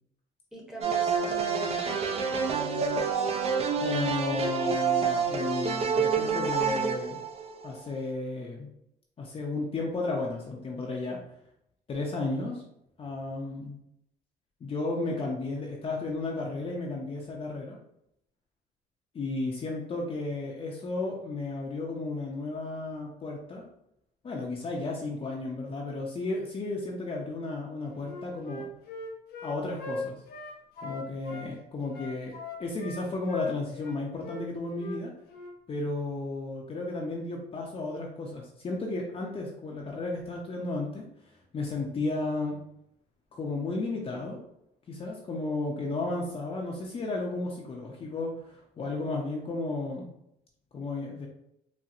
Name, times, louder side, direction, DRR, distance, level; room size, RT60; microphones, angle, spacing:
voice 1, 0.5-3.2 15.2-15.3, equal, 5° right, -3 dB, 0.9 m, -41 dB
sound 1, 0.8-7.8, right 6 dB, 35° right, 0.5 m, -28 dB
voice 2, 3.7-7.2 7.6-8.7 9.2-11.2 11.9-12.6 13.0-13.8 14.6-17.8 19.1-23.6 24.2-28.6 29.4-30.2 30.8-32.3 32.6-35.1 35.7-41.0 41.5-42.6 43.3-44.4 44.9-50.1 50.7-51.3, left 2 dB, 35° left, -1 dB, 0.6 m, -33 dB
Wind instrument woodwind instrument, 28.0-31.5 31.9-34.0 34.2-34.4 34.7-35.0 35.3-35.5, left 2 dB, 65° left, 0.7 m, -38 dB
4.2 x 2.1 x 2.5 m, 0.77 s
cardioid pair, 110°, 17 cm